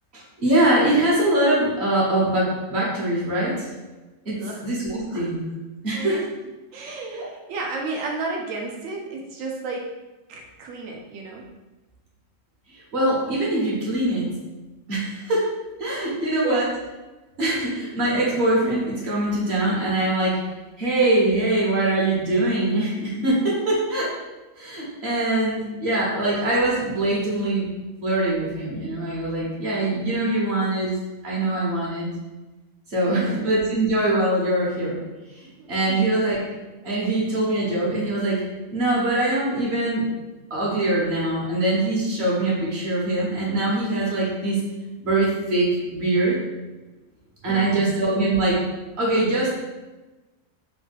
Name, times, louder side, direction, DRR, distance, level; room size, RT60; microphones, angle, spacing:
voice 1, 0.1-3.7 4.2-4.4 4.6-5.4 5.8-6.2 7.1-7.3 12.7-14.3 14.9-15.5 15.8-16.7 17.4-20.4 20.8-24.1 24.6-27.7 28.0-31.0 31.2-32.1 32.9-35.0 35.3-36.4 36.8-38.4 38.7-40.1 40.5-44.6 45.0-46.4 47.4-48.6 49.0-49.6, right 2 dB, 55° right, -5 dB, 1.1 m, -23 dB
voice 2, 6.7-9.9 10.3-11.4 16.4-16.7 33.1-33.4 35.6-36.1 47.5-47.9, right 3 dB, 80° right, 0 dB, 1.0 m, -32 dB
3.2 x 2.2 x 3.2 m, 1.1 s
omnidirectional pair, 1.4 m